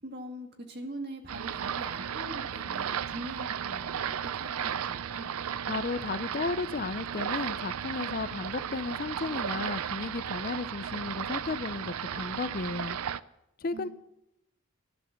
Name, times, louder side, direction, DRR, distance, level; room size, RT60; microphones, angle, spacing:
voice 1, 0.0-4.0 4.3-5.3 13.7-13.9, right 1 dB, 50° right, 3 dB, 1.8 m, -42 dB
sound 1, 1.3-13.2, right 8 dB, 90° right, 0.5 m, -35 dB
voice 2, 5.7-13.0 13.6-13.9, left 4 dB, 40° left, 14 dB, 0.4 m, -34 dB
12.0 x 11.0 x 6.4 m, 0.83 s
head